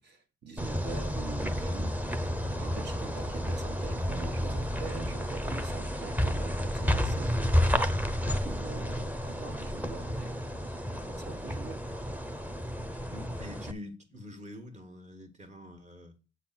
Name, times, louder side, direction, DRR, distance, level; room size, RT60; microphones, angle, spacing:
voice 1, 0.0-2.0 2.6-7.8 8.2-10.4 10.7-11.8, right 5 dB, 60° right, 1.8 m, -44 dB
sound 1, 0.6-13.7, equal, 10° right, 0.9 m, -31 dB
voice 2, 13.1-16.2, left 1 dB, 35° right, 1.9 m, -45 dB
8.2 x 4.1 x 6.0 m
cardioid pair, 90°, 20 cm